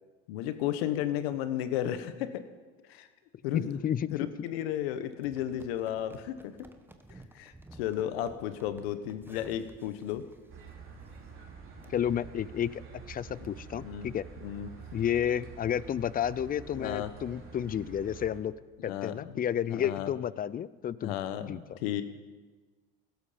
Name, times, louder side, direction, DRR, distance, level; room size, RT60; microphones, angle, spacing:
voice 1, 0.3-2.4 2.9-3.1 3.4-3.7 4.1-6.5 7.1-10.2 13.7-14.1 14.4-14.7 16.7-17.1 18.9-19.4 19.7-20.1 21.0-22.0, left 11 dB, 85° left, 11 dB, 1.1 m, -33 dB
voice 2, 3.5-4.1 11.9-14.2 14.9-18.5 18.8-21.8, left 9 dB, 30° left, 19 dB, 0.5 m, -31 dB
sound 1, 5.2-11.5 11.8-11.9 12.4-12.7 13.1-13.2 13.4-13.5 14.0-14.2 14.6-14.7 15.0-15.1 15.4-16.2 16.8-16.9, right 2 dB, 5° right, 1.2 m, -55 dB
sound 2, 10.5-18.4, right 5 dB, 45° right, 3.3 m, -47 dB
16.0 x 13.0 x 5.1 m, 1.4 s
supercardioid pair, 95°, 30 cm